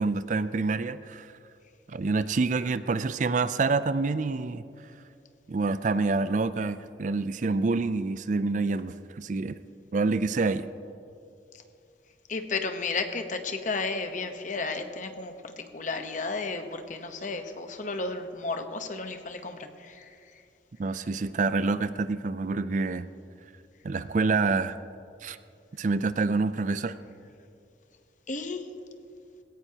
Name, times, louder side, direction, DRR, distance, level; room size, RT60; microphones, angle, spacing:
voice 1, 0.0-1.3 1.9-4.6 5.5-9.6 9.9-10.7 20.8-23.1 23.8-24.8 25.2-25.4 25.8-27.0, right 3 dB, 45° right, 13 dB, 0.4 m, -27 dB
voice 2, 12.3-20.2 28.3-28.7, left 3 dB, 45° left, 7 dB, 1.0 m, -33 dB
19.5 x 17.0 x 2.9 m, 2.6 s
head